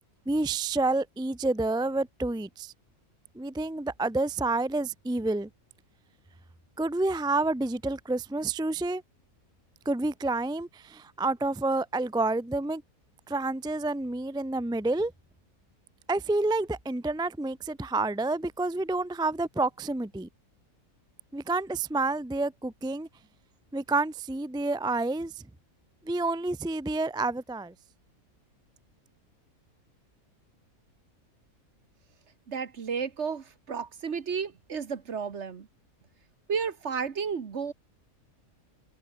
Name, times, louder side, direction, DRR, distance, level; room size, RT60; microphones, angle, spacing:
voice 1, 0.3-2.7 3.3-5.5 6.8-9.0 9.8-12.8 13.3-15.1 16.1-20.3 21.3-23.1 23.7-25.3 26.0-27.7, right 2 dB, 5° right, 0.5 m, -29 dB
voice 2, 32.5-35.7 36.5-37.7, right 6 dB, 55° right, 1.5 m, -32 dB
omnidirectional pair, 1.5 m